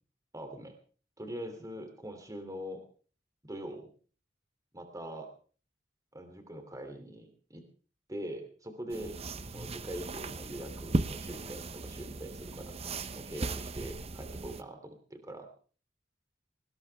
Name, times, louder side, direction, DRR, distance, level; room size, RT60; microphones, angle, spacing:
voice 1, 0.3-0.7 1.2-2.8 3.4-3.9 4.7-5.3 6.1-7.6 8.1-9.2 9.5-12.7 13.1-15.5, equal, 20° right, 6 dB, 3.0 m, -42 dB
sound 1, 8.9-14.6, right 2 dB, 35° right, 0.8 m, -37 dB
20.5 x 19.0 x 3.5 m, 0.41 s
head